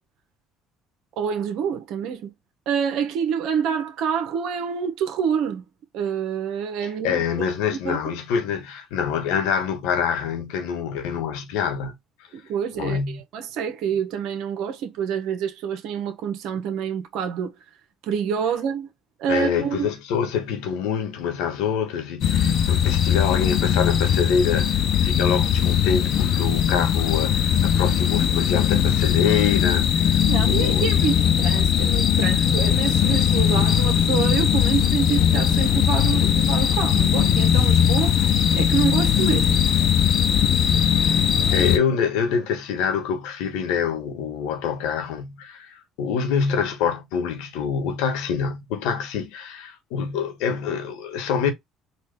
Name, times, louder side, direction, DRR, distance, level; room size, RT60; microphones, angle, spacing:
voice 1, 1.2-2.3 2.7-5.6 5.9-7.5 7.7-8.0 12.3-13.0 13.3-17.5 18.1-18.9 19.2-19.9 30.3-39.6, right 7 dB, 70° right, 1.2 m, -27 dB
voice 2, 6.8-12.0 12.8-13.2 19.3-31.0 41.5-51.5, left 7 dB, 80° left, 1.3 m, -26 dB
sound 1, 22.2-41.8, left 8 dB, 60° left, 0.8 m, -20 dB
4.2 x 2.6 x 3.5 m
supercardioid pair, 70°, 0 cm